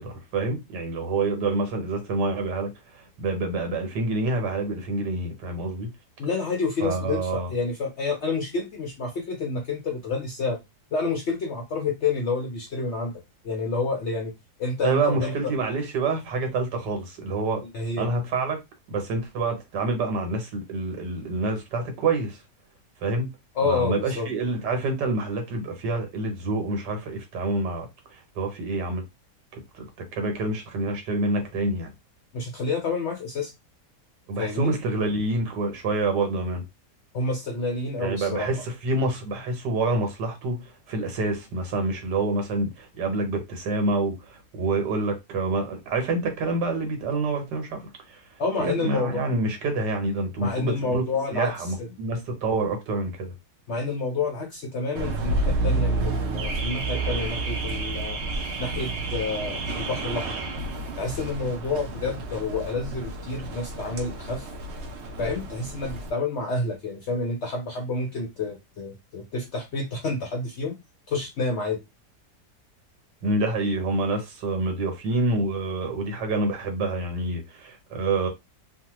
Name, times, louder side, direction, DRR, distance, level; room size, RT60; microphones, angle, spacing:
voice 1, 0.0-5.9 6.8-7.5 14.8-17.6 18.0-18.6 18.9-22.4 23.0-23.3 23.6-29.0 29.5-31.9 34.3-36.6 38.0-47.8 48.1-48.2 48.6-51.0 51.3-53.3 73.2-78.3, right 2 dB, 85° right, 1.5 m, -27 dB
voice 2, 6.2-10.6 10.9-14.3 14.6-15.3 17.6-18.1 23.6-24.3 32.3-33.5 34.4-34.8 37.1-38.5 48.4-49.2 50.4-51.5 53.7-58.2 58.6-60.4 61.0-64.5 65.2-70.8 71.1-71.8, left 3 dB, 65° left, 0.7 m, -29 dB
Car / Alarm, 55.0-66.1, right 2 dB, 65° right, 0.6 m, -30 dB
3.1 x 2.2 x 2.9 m
omnidirectional pair, 1.8 m